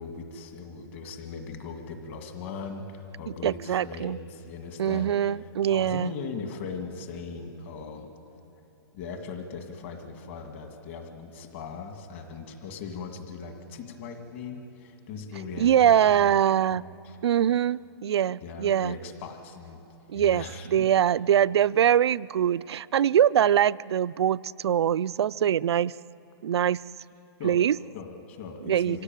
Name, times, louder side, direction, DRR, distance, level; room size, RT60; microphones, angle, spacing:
voice 1, 0.0-8.1 8.9-16.4 16.7-17.2 18.4-19.8 20.1-20.9 27.4-27.6 27.9-29.0, left 5 dB, 30° left, 5 dB, 1.9 m, -39 dB
voice 2, 3.4-4.2 4.8-6.1 15.6-16.8 17.2-19.0 20.1-25.9 26.4-26.8 27.4-27.8 28.6-29.0, right 10 dB, 80° right, 18 dB, 0.4 m, -23 dB
25.0 x 16.5 x 9.1 m, 2.8 s
hypercardioid pair, 175°, 14 cm